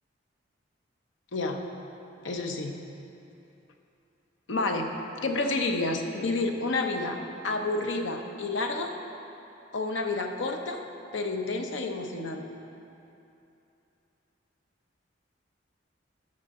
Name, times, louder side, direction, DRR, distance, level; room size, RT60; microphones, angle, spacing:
voice 1, 1.3-1.6 2.2-2.8 4.5-4.9 5.2-7.1 7.4-8.9 9.7-10.8 11.1-12.5, left 2 dB, 80° left, 4 dB, 0.7 m, -29 dB
12.5 x 6.3 x 3.7 m, 2.8 s
head